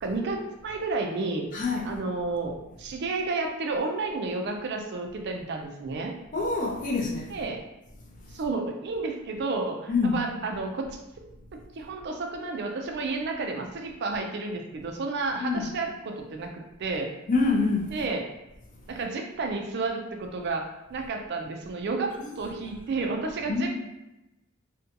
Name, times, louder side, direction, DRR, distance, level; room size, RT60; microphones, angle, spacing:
voice 1, 0.0-1.5 1.8-6.1 7.3-7.6 8.3-11.0 11.7-17.1 17.9-18.2 18.9-23.7, right 3 dB, 50° right, 0.4 m, -31 dB
voice 2, 1.5-1.9 6.3-7.3 9.9-10.2 15.4-15.7 17.3-17.9 22.2-22.3 23.5-23.7, left 4 dB, 35° left, 0.5 m, -26 dB
2.6 x 2.2 x 2.7 m
head